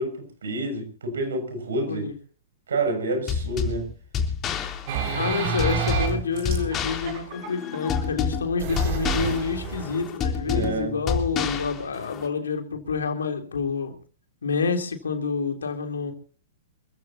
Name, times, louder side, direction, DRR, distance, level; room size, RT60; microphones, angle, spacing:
voice 1, 0.0-2.1 2.7-3.9 10.4-10.9, right 2 dB, 75° right, 6.8 m, -28 dB
voice 2, 1.8-2.1 5.1-14.0 14.4-16.1, left 5 dB, 75° left, 3.5 m, -28 dB
sound 1, 3.3-12.3, left 6 dB, 30° left, 3.5 m, -29 dB
sound 2, 4.9-8.0 8.6-10.0, right 7 dB, 50° right, 7.3 m, -29 dB
28.0 x 15.5 x 2.9 m
figure-of-eight pair, 110°, 0 cm